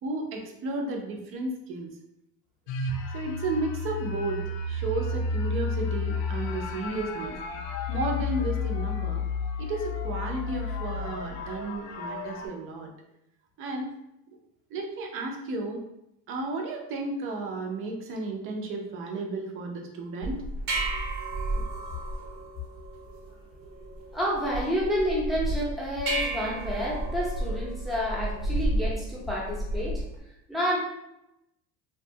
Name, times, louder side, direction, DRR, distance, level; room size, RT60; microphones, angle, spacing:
voice 1, 0.0-1.9 3.1-7.4 7.9-9.2 9.6-12.9 13.6-13.9 14.7-15.8 16.3-20.4, right 2 dB, 45° right, 2 dB, 0.6 m, -33 dB
sound 1, 2.7-12.5, left 4 dB, 80° left, 0.5 m, -32 dB
sound 2, 20.2-30.2, right 1 dB, 85° right, 1.1 m, -32 dB
voice 2, 24.1-30.0 30.5-30.8, equal, ahead, -6 dB, 0.6 m, -29 dB
2.9 x 2.3 x 2.7 m, 0.84 s
cardioid pair, 155°, 31 cm